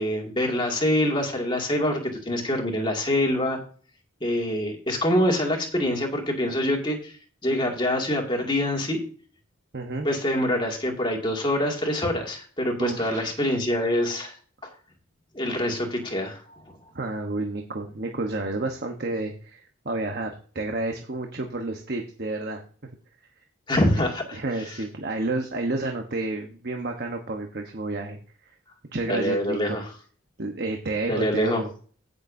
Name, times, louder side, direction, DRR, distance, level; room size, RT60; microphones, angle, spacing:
voice 1, 0.0-2.0 2.3-3.6 4.2-7.1 7.4-9.0 10.0-14.3 14.6-14.7 15.3-16.4 23.7-24.4 29.1-29.9 31.1-31.6, left 1 dB, 25° left, 1 dB, 2.3 m, -25 dB
voice 2, 9.7-10.1 12.8-13.4 16.9-19.6 19.8-22.9 24.3-28.2 28.9-29.8 30.4-31.7, right 2 dB, 50° right, 3 dB, 1.1 m, -30 dB
16.5 x 6.8 x 2.7 m, 0.42 s
head